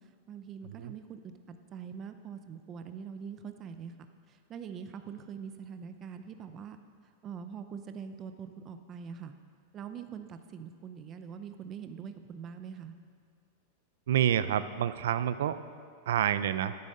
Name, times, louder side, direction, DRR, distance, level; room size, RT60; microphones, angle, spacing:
voice 1, 0.3-3.9 4.3-6.8 7.2-9.3 9.7-13.0, right 7 dB, 20° right, 8 dB, 0.5 m, -43 dB
voice 2, 14.1-15.6 16.1-16.8, right 10 dB, 70° right, 13 dB, 0.5 m, -28 dB
11.0 x 9.7 x 6.6 m, 2.4 s
supercardioid pair, 175°, 0 cm